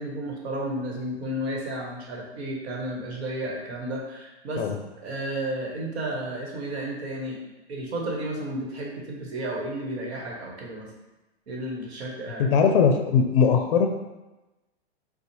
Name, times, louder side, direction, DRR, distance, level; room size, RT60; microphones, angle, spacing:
voice 1, 0.0-4.7 5.0-7.4 7.7-10.9 11.5-12.6, right 1 dB, 70° right, -1 dB, 1.1 m, -32 dB
voice 2, 12.4-13.9, left 6 dB, 55° left, 5 dB, 0.5 m, -20 dB
3.9 x 2.1 x 3.0 m, 1.1 s
hypercardioid pair, 135°, 33 cm